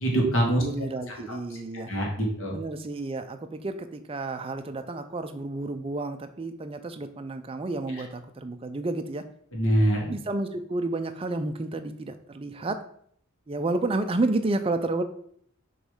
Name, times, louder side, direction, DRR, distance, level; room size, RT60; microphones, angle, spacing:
voice 1, 0.0-0.6 1.1-1.2 1.9-2.5 9.5-10.1, right 1 dB, 60° left, -1 dB, 1.6 m, -24 dB
voice 2, 0.6-1.9 2.5-9.2 10.1-12.8 13.5-15.0, right 2 dB, 25° right, 8 dB, 0.4 m, -31 dB
6.5 x 3.2 x 4.9 m, 0.65 s
head